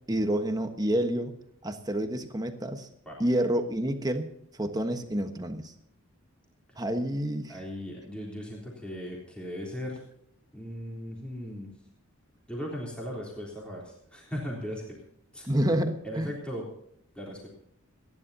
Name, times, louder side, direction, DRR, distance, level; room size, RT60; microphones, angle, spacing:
voice 1, 0.1-1.3 1.6-2.9 3.2-4.3 4.6-5.7 6.8-7.6 15.5-16.3, right 1 dB, 15° right, 7 dB, 1.2 m, -28 dB
voice 2, 7.5-10.0 10.5-11.7 12.5-14.8 15.3-15.5 16.0-16.7 17.2-17.5, equal, 5° left, -3 dB, 3.5 m, -38 dB
30.0 x 11.0 x 2.8 m, 0.75 s
head